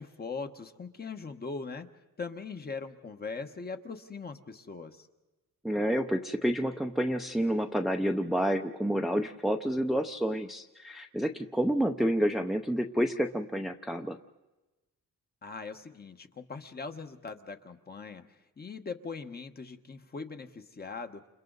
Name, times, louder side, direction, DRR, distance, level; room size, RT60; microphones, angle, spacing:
voice 1, 0.0-1.9 2.2-5.1 15.4-18.2 18.6-21.2, left 4 dB, 30° left, 7 dB, 1.3 m, -40 dB
voice 2, 5.6-14.2, equal, ahead, 5 dB, 0.7 m, -29 dB
30.0 x 28.5 x 4.0 m, 1.1 s
wide cardioid pair, 155°, 32 cm